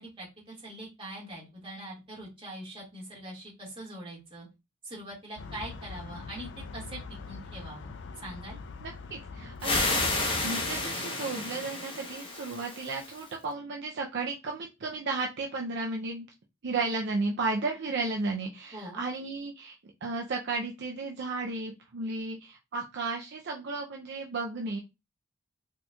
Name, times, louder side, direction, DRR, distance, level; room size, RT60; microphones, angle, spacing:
voice 1, 0.0-4.5 4.8-8.6 18.7-19.0, right 1 dB, 25° right, -4 dB, 1.9 m, -43 dB
sound 1, 5.4-10.9, left 4 dB, 65° left, 0.4 m, -43 dB
voice 2, 8.8-10.0 10.4-16.3 16.6-19.8 20.0-24.8, right 3 dB, 60° right, 1 dB, 0.5 m, -34 dB
sound 2, 9.6-13.3, left 2 dB, 25° left, 0.9 m, -31 dB
4.3 x 2.9 x 2.3 m, 0.25 s
head